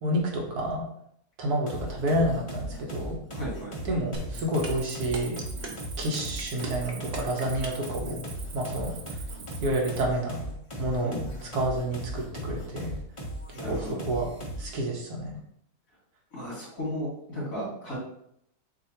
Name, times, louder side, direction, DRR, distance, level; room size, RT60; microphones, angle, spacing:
voice 1, 0.0-0.8 1.4-3.2 3.8-5.4 6.0-8.2 8.5-9.2 9.6-10.4 10.8-13.0 13.7-14.3 14.6-15.4, right 1 dB, 85° right, -1 dB, 1.5 m, -29 dB
sound 1, 1.7-14.8, right 1 dB, 25° left, 0.7 m, -37 dB
voice 2, 3.3-3.7 11.0-11.2 13.5-14.0 16.3-18.0, equal, 65° left, -6 dB, 2.5 m, -35 dB
sound 2, 4.1-7.9, right 2 dB, 45° right, 0.6 m, -37 dB
Cricket, 4.3-10.0, right 6 dB, 65° right, 0.9 m, -45 dB
6.6 x 2.6 x 2.9 m, 0.71 s
omnidirectional pair, 1.6 m